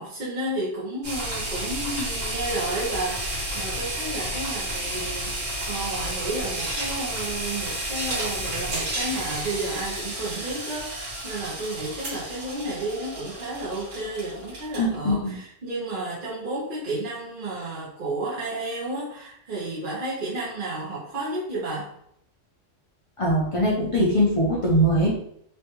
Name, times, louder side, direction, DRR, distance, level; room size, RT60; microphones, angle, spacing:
voice 1, 0.0-21.9, right 2 dB, 50° right, -7 dB, 0.9 m, -32 dB
sound 1, 1.0-14.9, right 1 dB, 75° right, 1.5 m, -31 dB
voice 2, 14.8-15.4 23.2-25.1, equal, 40° left, -5 dB, 0.5 m, -21 dB
3.2 x 2.3 x 2.9 m, 0.72 s
omnidirectional pair, 1.3 m